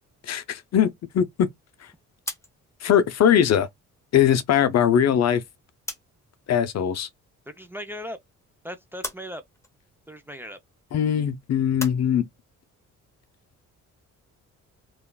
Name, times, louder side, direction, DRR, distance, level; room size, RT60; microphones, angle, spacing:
voice 1, 0.3-1.5 2.8-3.7 4.1-5.4 6.5-7.1 10.9-12.3, left 9 dB, 55° left, 0.6 m, -21 dB
sound 1, 2.2-6.3 6.6-7.7 8.0-12.0, left 1 dB, 10° left, 0.9 m, -41 dB
voice 2, 7.5-8.2 8.6-9.4 10.1-10.6, equal, 5° right, 0.5 m, -37 dB
3.4 x 2.4 x 2.3 m
cardioid pair, 80°, 31 cm